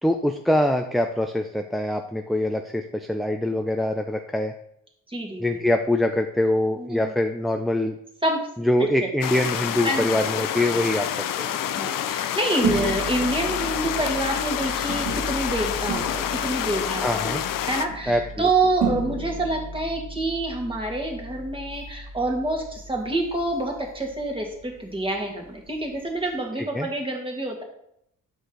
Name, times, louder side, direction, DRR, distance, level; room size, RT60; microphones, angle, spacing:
voice 1, 0.0-4.5 5.4-8.0 8.6-11.5 17.0-17.4 18.1-18.5 26.7-26.9, left 1 dB, ahead, 5 dB, 0.4 m, -24 dB
voice 2, 5.1-5.6 6.8-7.1 8.2-8.5 8.8-9.1 9.8-10.1 11.5-27.6, right 2 dB, 15° right, 1 dB, 1.9 m, -27 dB
sound 1, 9.2-17.9, left 10 dB, 75° left, 0.6 m, -28 dB
sound 2, 12.6-26.3, right 3 dB, 65° right, 2.5 m, -34 dB
8.0 x 6.4 x 3.8 m, 0.74 s
cardioid pair, 120°, 33 cm